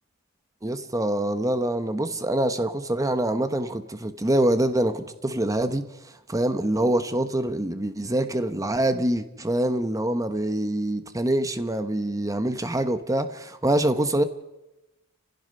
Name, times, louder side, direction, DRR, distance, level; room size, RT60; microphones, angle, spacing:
voice 1, 0.6-5.8 6.3-14.2, right 1 dB, 15° right, 1.0 m, -25 dB
30.0 x 16.0 x 5.6 m
head